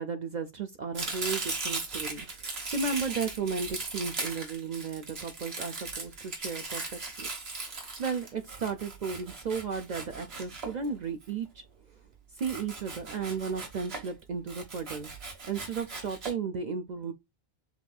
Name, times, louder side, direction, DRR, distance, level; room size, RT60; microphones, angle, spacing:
voice 1, 0.0-7.3 7.7-11.6 12.3-15.1 15.4-17.1, right 5 dB, 55° right, 0.6 m, -34 dB
Domestic sounds home sounds, 0.9-11.2 12.4-14.1 14.5-16.3, right 3 dB, 75° right, 1.6 m, -38 dB
7.0 x 2.6 x 2.3 m
omnidirectional pair, 1.1 m